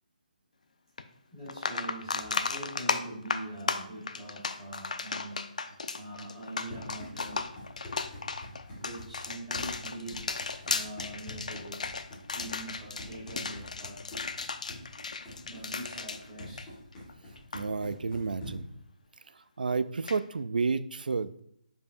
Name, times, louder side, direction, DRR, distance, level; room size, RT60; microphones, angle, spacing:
sound 1, 1.0-1.1 1.5-17.1 17.4-17.6 20.1-20.2, left 4 dB, 55° left, 0.4 m, -35 dB
voice 1, 1.3-5.4 5.9-7.5 8.8-14.0 15.4-16.7, right 1 dB, 5° right, -16 dB, 1.8 m, -43 dB
Run, 6.3-18.8, left 1 dB, 15° left, 1.5 m, -46 dB
voice 2, 17.5-18.7 19.6-21.4, right 4 dB, 90° right, 14 dB, 0.4 m, -31 dB
6.8 x 5.3 x 2.6 m, 0.71 s
hypercardioid pair, 180°, 5 cm